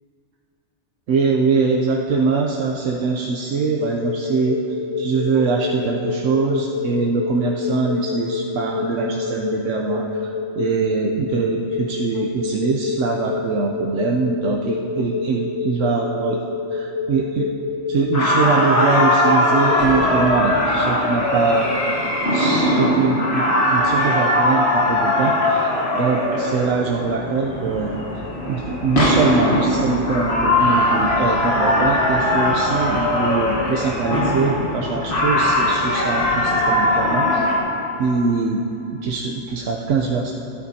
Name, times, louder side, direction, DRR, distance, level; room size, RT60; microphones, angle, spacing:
voice 1, 1.1-4.6 5.0-10.3 10.6-16.4 16.7-17.5 17.9-21.7 22.3-23.4 23.7-37.4 38.0-38.6 38.9-40.3, right 4 dB, 80° right, -1 dB, 1.1 m, -23 dB
sound 1, 3.6-20.3, left 4 dB, 80° left, 3.5 m, -28 dB
sound 2, 18.1-37.6, left 1 dB, 55° left, 1.7 m, -20 dB
14.0 x 13.0 x 2.7 m, 2.9 s
omnidirectional pair, 1.3 m